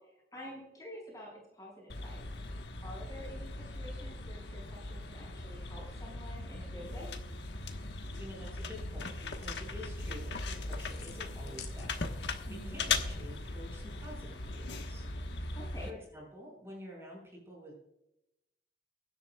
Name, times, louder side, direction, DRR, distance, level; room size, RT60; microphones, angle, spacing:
voice 1, 0.0-2.2 2.8-7.1 12.5-12.8 15.5-15.9, equal, 20° left, -3 dB, 5.2 m, -48 dB
sound 1, 1.9-15.9, left 3 dB, 90° left, 1.3 m, -39 dB
voice 2, 7.9-12.4 12.7-15.1 15.4-15.6 15.9-17.7, left 1 dB, 15° right, -2 dB, 5.6 m, -49 dB
sound 2, 8.3-12.3, left 5 dB, 70° left, 2.3 m, -55 dB
23.5 x 11.0 x 2.3 m, 0.88 s
head